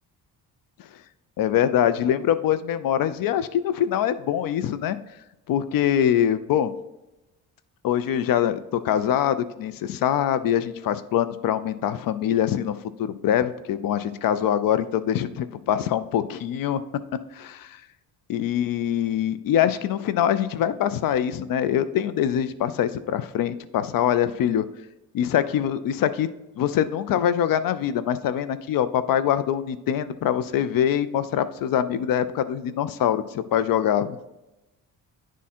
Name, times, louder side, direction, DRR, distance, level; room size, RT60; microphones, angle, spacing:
voice 1, 1.4-5.0 5.5-6.7 7.8-16.8 17.3-17.8 18.3-24.6 25.1-26.3 26.6-34.2, left 10 dB, 65° left, 13 dB, 0.5 m, -24 dB
10.5 x 3.7 x 4.2 m, 0.96 s
cardioid pair, 170°, 37 cm